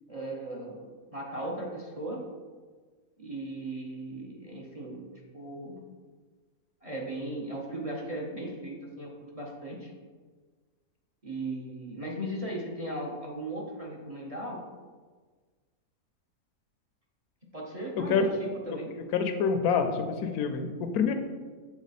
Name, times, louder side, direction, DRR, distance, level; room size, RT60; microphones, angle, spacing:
voice 1, 0.1-2.2 3.2-5.1 5.3-5.8 6.8-9.9 11.2-14.6 17.5-18.9, right 1 dB, 30° right, -2 dB, 0.8 m, -37 dB
voice 2, 18.0-18.3 19.1-21.1, left 5 dB, 85° left, 7 dB, 1.1 m, -27 dB
7.1 x 3.8 x 4.1 m, 1.5 s
omnidirectional pair, 1.5 m